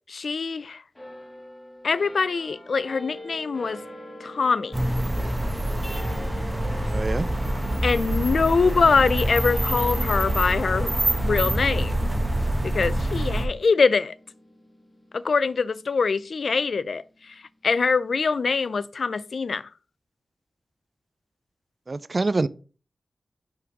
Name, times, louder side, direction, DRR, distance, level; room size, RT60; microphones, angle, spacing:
voice 1, 0.1-0.8 1.8-3.8 4.2-4.8 7.8-10.9 11.2-12.1 12.6-14.1 15.1-19.7, left 4 dB, 75° left, 0.3 m, -24 dB
sound 1, 1.0-17.7, left 1 dB, 30° left, 1.7 m, -44 dB
sound 2, 4.7-13.5, right 1 dB, 15° right, 1.2 m, -25 dB
voice 2, 6.9-7.3 21.9-22.5, right 3 dB, 50° right, 0.4 m, -25 dB
5.9 x 3.8 x 4.6 m
cardioid pair, 45°, 0 cm